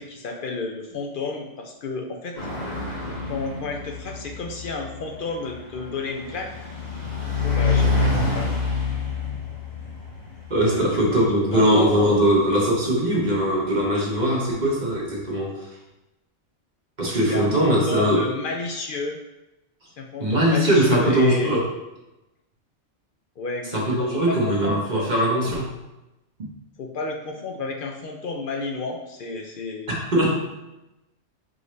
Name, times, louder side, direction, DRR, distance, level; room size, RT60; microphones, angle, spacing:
voice 1, 0.0-2.4 2.6-6.5 7.4-8.6 10.7-11.2 11.5-12.2 17.3-19.2 20.0-21.5 23.4-25.1 26.8-30.0, left 3 dB, 60° left, 1 dB, 0.6 m, -32 dB
sound 1, 2.3-13.3, left 3 dB, 40° left, 1.0 m, -28 dB
voice 2, 10.5-15.5 17.0-18.3 20.2-21.6 23.7-25.7 29.9-30.3, equal, 40° right, -3 dB, 1.0 m, -21 dB
4.9 x 2.6 x 3.1 m, 0.96 s
omnidirectional pair, 1.2 m